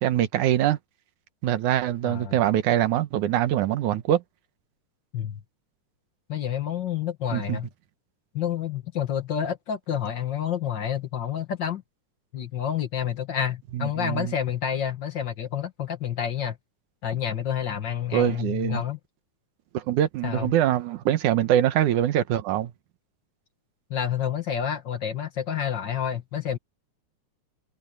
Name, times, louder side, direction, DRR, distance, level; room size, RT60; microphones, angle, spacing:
voice 1, 0.0-0.8 1.4-4.2 7.3-7.6 13.7-14.3 18.1-18.8 19.7-22.7, right 11 dB, 80° right, 2.6 m, -23 dB
voice 2, 2.0-2.4 5.1-5.4 6.3-7.7 8.3-11.8 12.3-16.6 17.0-19.0 20.2-20.5 23.9-26.6, left 9 dB, 50° left, 1.4 m, -29 dB
omnidirectional pair, 3.5 m